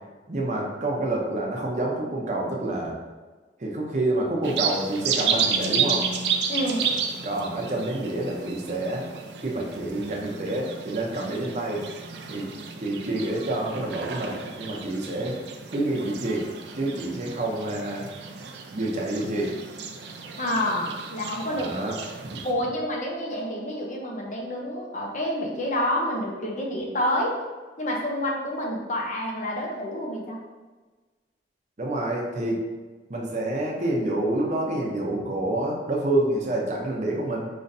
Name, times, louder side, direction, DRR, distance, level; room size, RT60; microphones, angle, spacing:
voice 1, 0.3-3.0 3.6-6.1 7.2-9.0 9.4-11.8 12.3-12.5 12.8-15.4 15.7-16.5 16.7-18.1 18.7-19.5 21.5-22.0 22.2-22.4 31.8-32.6 33.1-37.5, right 1 dB, 40° right, -1 dB, 0.7 m, -28 dB
sound 1, 4.4-22.5, right 6 dB, 70° right, 0.5 m, -32 dB
voice 2, 6.5-6.9 20.4-21.7 22.4-27.3 27.8-30.4, left 1 dB, 45° left, -1 dB, 0.8 m, -28 dB
5.3 x 3.1 x 2.6 m, 1.3 s
head